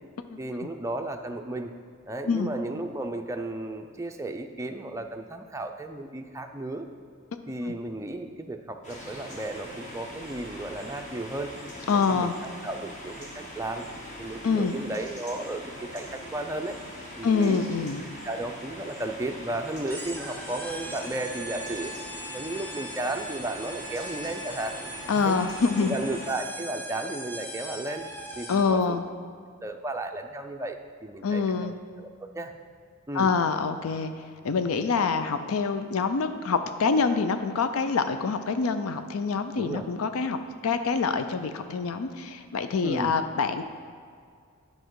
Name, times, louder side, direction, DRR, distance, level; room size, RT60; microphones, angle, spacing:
voice 1, 0.4-1.7 2.1-6.9 7.5-11.5 11.9-13.9 14.2-16.8 17.2-17.6 18.2-21.9 22.3-24.8 25.1-25.4 25.8-28.0 28.4-29.0 29.6-31.7 32.0-32.5 33.1-33.3 39.6-39.9 42.8-43.2, right 2 dB, 15° right, 4 dB, 0.4 m, -34 dB
sound 1, 8.8-26.3, equal, 35° left, 1.5 m, -42 dB
voice 2, 11.9-12.3 14.4-14.7 17.2-18.0 25.1-25.9 28.5-29.0 31.2-31.7 33.1-34.1 34.4-40.4 40.6-43.6, left 5 dB, 75° left, 9 dB, 0.5 m, -26 dB
sound 2, 19.9-28.8, right 1 dB, 10° left, 0.8 m, -40 dB
10.0 x 5.3 x 4.7 m, 2.2 s
head